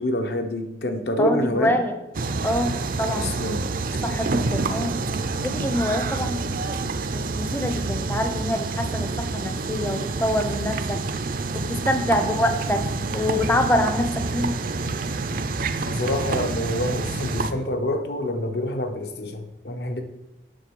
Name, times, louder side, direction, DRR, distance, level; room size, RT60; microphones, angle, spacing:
voice 1, 0.0-1.8 3.1-3.7 15.9-20.0, left 1 dB, 65° left, 6 dB, 1.0 m, -27 dB
voice 2, 1.2-1.9 2.4-3.3 4.0-5.0 5.4-6.4 7.1-11.0 11.5-12.8 13.1-14.1 14.3-14.5, left 1 dB, 10° left, 6 dB, 0.6 m, -25 dB
sound 1, 2.1-17.5, right 3 dB, 55° right, 0.5 m, -27 dB
7.5 x 6.4 x 5.4 m, 0.94 s
head